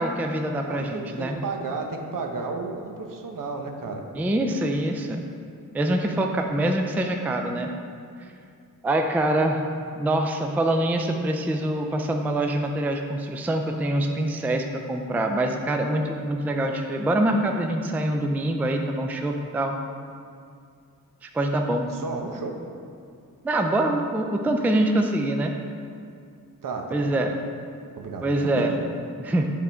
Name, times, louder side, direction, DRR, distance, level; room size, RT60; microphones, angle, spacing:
voice 1, 0.0-1.4 4.2-5.3 5.7-7.7 8.8-9.6 10.0-19.8 21.2-21.9 23.4-25.5 26.9-27.3 28.2-28.7 29.2-29.5, right 1 dB, 5° right, 4 dB, 0.3 m, -25 dB
voice 2, 0.6-4.1 21.9-22.5 26.6-27.1 28.0-28.3 28.7-28.8, right 3 dB, 65° right, 3 dB, 0.8 m, -33 dB
8.2 x 3.7 x 4.3 m, 2.3 s
wide cardioid pair, 115°, 35 cm